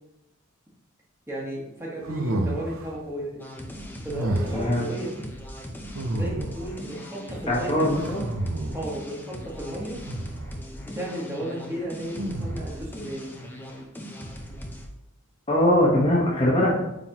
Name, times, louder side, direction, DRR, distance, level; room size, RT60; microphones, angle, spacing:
voice 1, 1.3-3.4 4.0-5.2 6.1-7.9 8.7-10.0 10.9-13.3, right 1 dB, 10° right, -5 dB, 1.4 m, -34 dB
sound 1, 2.0-3.0 4.1-4.8 5.9-6.8 7.9-9.0 10.0-10.6 12.2-12.9, right 1 dB, 65° right, 0.7 m, -30 dB
sound 2, 3.4-14.9, equal, 10° left, 0.6 m, -39 dB
voice 2, 4.5-4.8 7.5-8.3 15.5-16.8, left 1 dB, 25° left, -4 dB, 1.0 m, -21 dB
8.3 x 3.9 x 2.9 m, 0.93 s
head